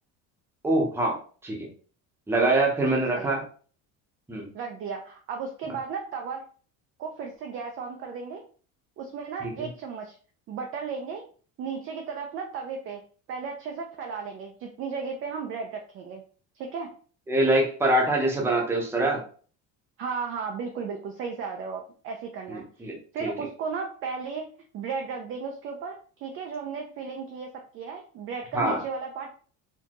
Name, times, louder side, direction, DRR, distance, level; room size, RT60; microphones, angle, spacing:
voice 1, 0.6-1.2 1.4-1.7 2.3-3.4 4.3-4.5 9.4-9.7 17.3-19.2 22.5-22.9 23.2-23.3 28.5-28.8, right 2 dB, 5° right, -1 dB, 0.7 m, -24 dB
voice 2, 2.9-3.3 4.5-6.4 7.0-8.4 9.0-10.2 10.5-11.2 11.6-13.0 13.3-16.2 16.5-16.9 20.0-22.9 23.1-24.5 24.7-27.5 27.7-29.3, right 5 dB, 35° right, 2 dB, 0.4 m, -35 dB
4.3 x 2.7 x 2.9 m, 0.42 s
cardioid pair, 175°, 40 cm